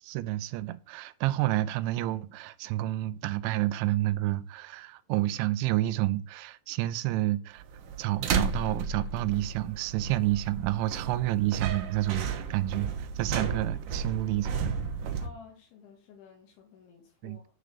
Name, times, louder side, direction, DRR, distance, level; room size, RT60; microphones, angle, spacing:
voice 1, 0.0-7.6 8.0-14.8 17.2-17.4, right 15 dB, 85° right, 2.9 m, -29 dB
sound 1, 7.6-15.3, right 6 dB, 70° right, 2.1 m, -33 dB
voice 2, 15.2-17.5, left 4 dB, 80° left, 4.2 m, -52 dB
11.0 x 4.9 x 6.7 m
omnidirectional pair, 5.4 m